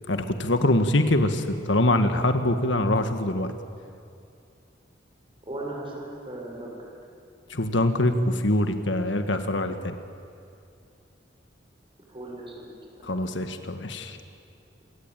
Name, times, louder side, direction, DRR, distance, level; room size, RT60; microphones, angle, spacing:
voice 1, 0.1-3.5 7.5-10.0 13.0-14.2, left 1 dB, 70° left, 8 dB, 1.7 m, -24 dB
voice 2, 5.5-6.8 12.1-12.7 13.1-13.2, right 1 dB, 30° right, -1 dB, 7.4 m, -37 dB
27.5 x 23.0 x 9.2 m, 2.4 s
head